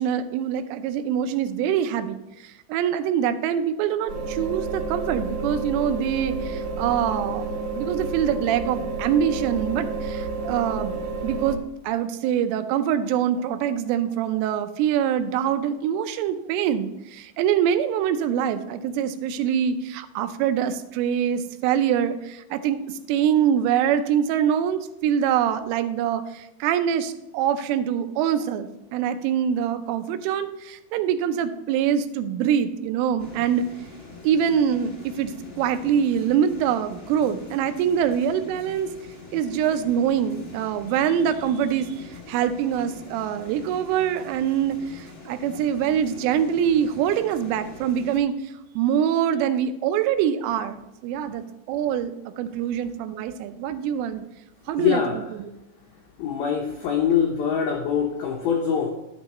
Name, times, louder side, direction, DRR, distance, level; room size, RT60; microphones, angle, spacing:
voice 1, 0.0-7.4 7.8-11.0 11.2-33.7 34.2-38.9 39.3-54.2 54.7-55.5, right 9 dB, 85° right, 9 dB, 3.2 m, -24 dB
sound 1, 4.1-11.6, right 3 dB, 50° right, 2.5 m, -30 dB
sound 2, 33.2-48.2, left 4 dB, 30° left, 1.2 m, -44 dB
voice 2, 54.8-55.2 56.2-58.9, left 8 dB, 90° left, 1 dB, 2.1 m, -23 dB
11.0 x 9.3 x 3.0 m, 0.93 s
omnidirectional pair, 5.7 m